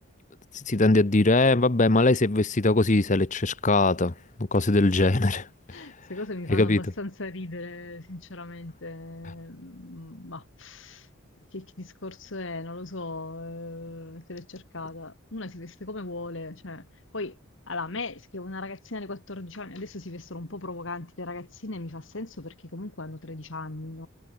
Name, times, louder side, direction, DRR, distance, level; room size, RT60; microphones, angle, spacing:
voice 1, 0.5-4.1 4.4-5.5 6.5-6.8, left 2 dB, 35° left, 0.9 m, -21 dB
voice 2, 5.7-11.1 11.5-16.9 17.1-17.4 17.7-24.1, left 2 dB, 55° left, 1.6 m, -38 dB
head